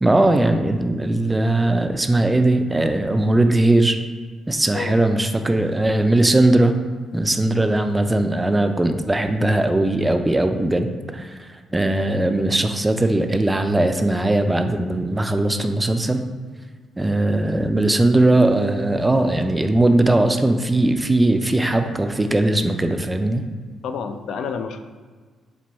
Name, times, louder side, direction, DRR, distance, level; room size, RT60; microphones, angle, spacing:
voice 1, 0.0-4.0 4.5-6.8 7.1-16.2 17.0-23.4, right 2 dB, 15° right, 7 dB, 0.3 m, -19 dB
voice 2, 23.8-24.8, left 6 dB, 75° left, 7 dB, 0.3 m, -29 dB
4.4 x 2.2 x 4.0 m, 1.5 s
cardioid pair, 85°, 0 cm